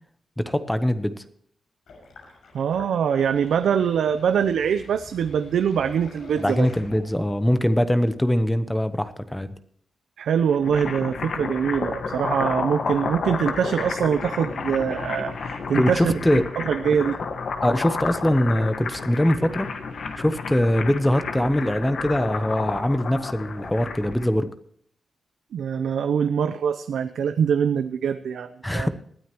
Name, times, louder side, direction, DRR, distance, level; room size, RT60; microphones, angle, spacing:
voice 1, 0.4-1.2 6.4-9.5 15.7-16.5 17.6-19.7 20.2-24.5 28.6-28.9, left 1 dB, 5° left, 11 dB, 0.8 m, -22 dB
Sink (filling or washing), 1.9-7.4, left 3 dB, 85° left, 6.2 m, -45 dB
voice 2, 2.5-6.7 10.2-16.1 16.6-17.2 25.5-28.5 28.7-28.9, right 7 dB, 85° right, 10 dB, 0.6 m, -23 dB
sound 1, 10.4-24.3, left 4 dB, 60° left, 1.6 m, -31 dB
20.0 x 13.0 x 3.0 m, 0.64 s
wide cardioid pair, 125°, 0 cm